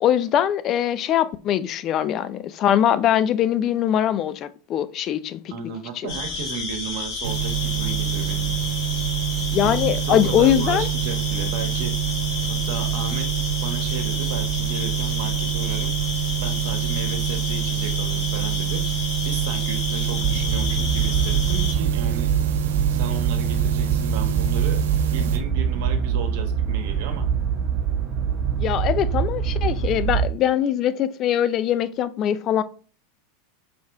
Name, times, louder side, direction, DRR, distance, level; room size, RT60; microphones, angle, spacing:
voice 1, 0.0-5.4 6.0-6.1 9.5-10.9 28.6-32.6, left 10 dB, 45° left, 0.5 m, -22 dB
voice 2, 5.5-8.5 9.6-11.9 12.5-15.9 16.4-22.3 22.9-24.8 25.1-27.3, right 6 dB, 65° right, 1.3 m, -34 dB
sound 1, 6.1-21.7, left 5 dB, 60° left, 2.6 m, -31 dB
sound 2, 7.2-25.4, right 10 dB, 80° right, 1.1 m, -26 dB
sound 3, 20.2-30.3, right 7 dB, 40° right, 1.3 m, -24 dB
4.8 x 4.2 x 4.7 m
hypercardioid pair, 105°, 0 cm